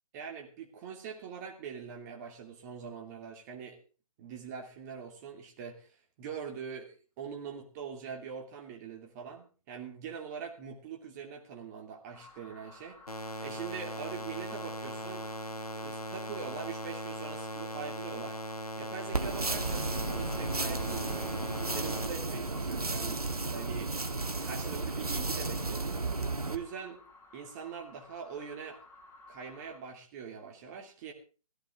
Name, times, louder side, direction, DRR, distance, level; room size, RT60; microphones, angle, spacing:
voice 1, 0.1-3.8 4.2-15.3 15.7-18.4 18.8-21.3 21.7-23.9 24.4-27.0 27.3-28.8 29.3-31.1, right 6 dB, 30° right, 2 dB, 2.7 m, -43 dB
sound 1, 12.1-29.8, left 3 dB, 10° left, 2.4 m, -55 dB
sound 2, 13.1-22.1, equal, 80° left, 1.8 m, -39 dB
sound 3, 19.1-26.6, right 3 dB, 85° right, 1.7 m, -33 dB
17.0 x 15.0 x 3.7 m, 0.36 s
figure-of-eight pair, 140°, 19 cm